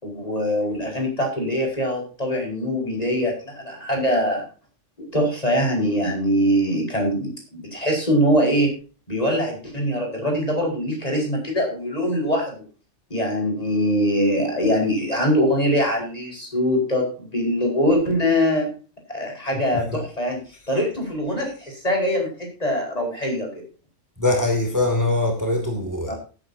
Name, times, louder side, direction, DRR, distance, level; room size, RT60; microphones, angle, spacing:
voice 1, 0.0-4.4 5.0-8.7 9.1-12.6 13.1-18.7 19.1-20.4 20.7-23.5 26.1-26.2, equal, 30° left, 0 dB, 5.1 m, -23 dB
voice 2, 24.2-26.1, left 2 dB, 15° right, 2 dB, 2.6 m, -22 dB
19.0 x 9.2 x 2.8 m, 0.36 s
omnidirectional pair, 1.3 m